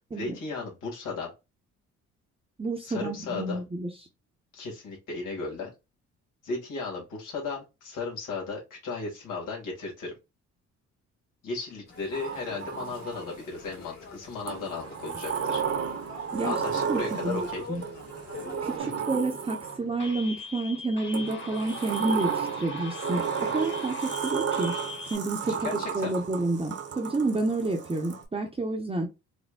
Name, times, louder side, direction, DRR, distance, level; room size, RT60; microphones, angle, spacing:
voice 1, 0.1-1.3 2.8-3.6 4.5-5.7 6.4-10.1 11.4-15.6 16.4-17.7 25.6-26.2, left 4 dB, 85° left, 1.7 m, -35 dB
voice 2, 2.6-3.9 16.3-16.5 16.9-17.4 17.7-17.8 18.6-24.7 25.1-29.1, right 2 dB, 20° right, 0.8 m, -29 dB
sound 1, 11.9-18.8, left 5 dB, 60° left, 2.1 m, -46 dB
Sliding door, 12.1-13.5 14.5-20.0 21.1-28.2, right 7 dB, 55° right, 1.0 m, -33 dB
sound 2, 20.0-25.2, left 4 dB, 40° left, 1.4 m, -41 dB
4.2 x 2.2 x 2.3 m
cardioid pair, 90°, 30 cm